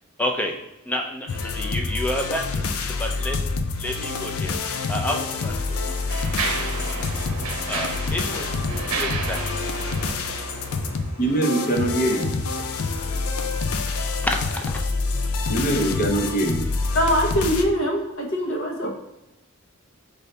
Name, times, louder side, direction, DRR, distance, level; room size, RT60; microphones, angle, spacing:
voice 1, 0.2-0.5 0.9-3.4 3.8-4.6 4.9-5.8 7.7-9.4 14.2-14.8, left 1 dB, 5° left, 2 dB, 0.4 m, -29 dB
sound 1, 1.3-17.6, left 3 dB, 80° left, 0.4 m, -27 dB
Mechanisms, 4.8-4.9 5.6-11.4, right 4 dB, 75° right, 0.7 m, -32 dB
voice 2, 11.2-12.3 15.5-16.6 18.8-18.9, right 1 dB, 40° left, 2 dB, 0.7 m, -23 dB
voice 3, 16.9-18.9, equal, 60° left, -1 dB, 1.0 m, -22 dB
5.3 x 2.7 x 3.2 m, 0.95 s
head